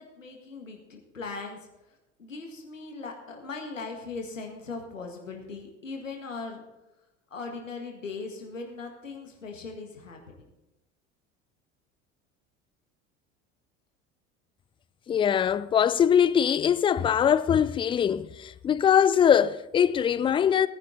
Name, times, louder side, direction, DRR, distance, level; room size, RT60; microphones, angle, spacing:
voice 1, 0.0-6.6 7.3-10.5, left 4 dB, 85° left, 1.8 m, -39 dB
voice 2, 15.1-20.7, left 8 dB, 15° left, 0.3 m, -22 dB
18.0 x 10.5 x 3.9 m
figure-of-eight pair, 65°, 37 cm